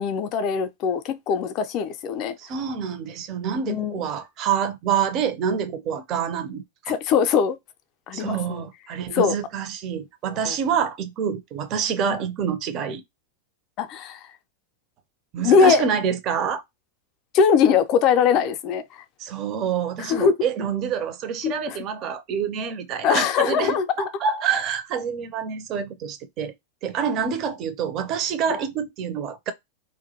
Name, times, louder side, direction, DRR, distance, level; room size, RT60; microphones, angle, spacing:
voice 1, 0.0-2.4 3.6-4.0 6.9-7.6 8.1-8.6 9.1-9.4 10.3-10.6 13.8-14.3 15.4-15.8 17.3-19.0 20.0-20.3 21.4-21.8 23.0-24.1, left 6 dB, 40° left, 0.3 m, -21 dB
voice 2, 2.4-6.9 8.1-13.0 15.3-16.6 19.2-26.5 26.8-29.5, right 7 dB, 35° right, 0.4 m, -27 dB
2.2 x 2.0 x 2.8 m
figure-of-eight pair, 90°, 0 cm